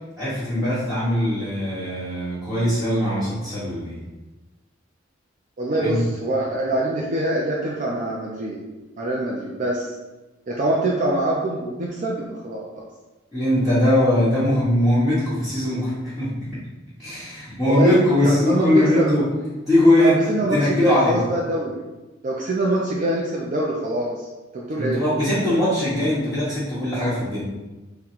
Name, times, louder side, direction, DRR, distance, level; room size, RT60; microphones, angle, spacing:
voice 1, 0.2-3.9 5.7-6.0 13.3-16.6 17.0-19.3 19.7-20.2 20.5-21.3 24.8-27.4, left 1 dB, ahead, -15 dB, 1.1 m, -21 dB
voice 2, 5.6-8.6 9.0-9.9 10.5-12.8 17.7-18.0 18.2-19.1 19.9-21.8 22.2-24.2 24.5-25.0, right 2 dB, 40° right, -3 dB, 0.4 m, -24 dB
3.7 x 2.2 x 4.4 m, 1.1 s
head